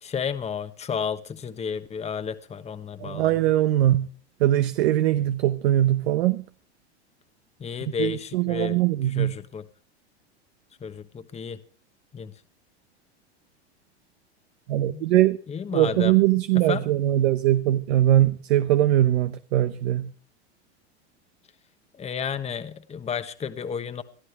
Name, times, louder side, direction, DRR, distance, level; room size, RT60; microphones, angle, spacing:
voice 1, 0.0-3.5 7.6-9.6 10.8-11.6 12.1-12.4 14.9-15.1 15.5-16.2 16.5-16.9 21.9-24.0, left 6 dB, 20° left, 1.2 m, -32 dB
voice 2, 3.0-4.1 4.4-6.4 8.0-9.3 14.7-15.4 15.7-20.1, right 13 dB, 70° right, 0.9 m, -21 dB
22.5 x 13.0 x 3.3 m
hypercardioid pair, 105°, 33 cm